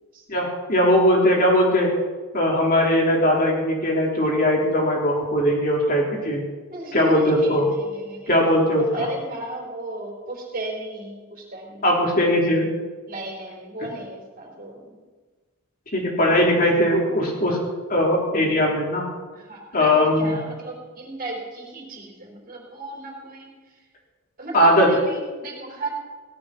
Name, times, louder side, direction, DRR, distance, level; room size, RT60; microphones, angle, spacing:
voice 1, 0.3-1.9 2.3-6.4 6.9-7.6 8.3-9.1 11.8-12.7 15.9-17.6 17.9-19.0 19.7-20.4 24.5-24.9, left 1 dB, 40° left, -2 dB, 3.8 m, -19 dB
voice 2, 6.7-8.3 8.8-12.5 13.1-15.0 19.3-23.5 24.4-25.9, right 1 dB, 40° right, 0 dB, 4.6 m, -34 dB
17.5 x 12.0 x 6.2 m, 1.3 s
head